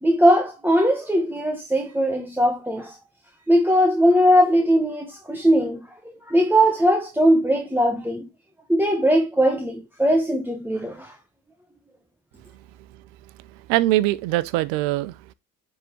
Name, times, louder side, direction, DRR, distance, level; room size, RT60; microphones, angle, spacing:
voice 1, 0.0-3.0 3.5-5.8 6.3-8.3 8.7-11.2, equal, 5° right, 1.0 m, -19 dB
voice 2, 13.4-15.3, right 16 dB, 85° right, 0.6 m, -23 dB
9.8 x 3.6 x 3.0 m
supercardioid pair, 70°, 38 cm